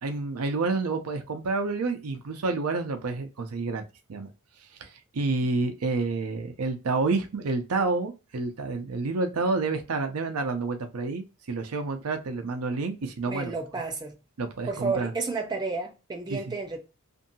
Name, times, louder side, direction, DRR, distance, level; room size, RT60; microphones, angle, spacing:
voice 1, 0.0-3.8 4.1-4.3 4.8-4.9 5.1-13.5 14.4-15.1 16.3-16.4, right 3 dB, 80° right, 0.6 m, -29 dB
voice 2, 13.3-14.2 14.7-16.8, right 4 dB, 20° right, 0.6 m, -31 dB
2.7 x 2.6 x 2.6 m
head